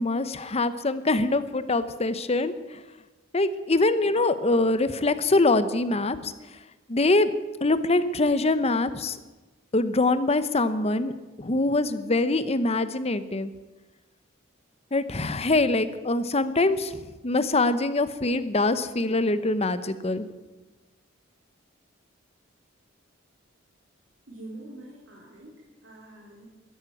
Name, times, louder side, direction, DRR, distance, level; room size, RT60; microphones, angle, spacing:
voice 1, 0.0-2.5 3.3-6.3 6.9-7.3 7.6-9.2 9.7-11.1 11.4-13.5 14.9-20.2, left 2 dB, 35° left, 12 dB, 0.9 m, -24 dB
voice 2, 24.3-25.5 25.8-26.6, right 2 dB, 70° right, -4 dB, 4.1 m, -44 dB
13.5 x 11.0 x 9.2 m, 1.2 s
head